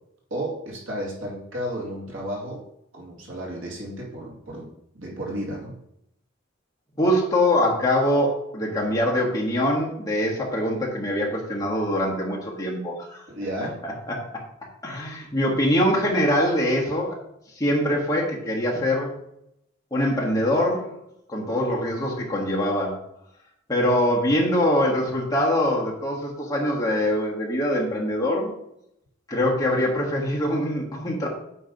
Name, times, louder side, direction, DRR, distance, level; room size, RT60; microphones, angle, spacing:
voice 1, 0.3-2.6 2.9-5.8 13.3-13.8, right 1 dB, 80° right, -3 dB, 2.4 m, -33 dB
voice 2, 7.0-13.2 14.1-14.2 14.8-17.2 17.5-19.1 19.9-20.9 21.3-23.0 23.7-28.5 29.3-31.3, left 1 dB, 20° left, -3 dB, 1.6 m, -23 dB
8.5 x 3.3 x 5.3 m, 0.78 s
head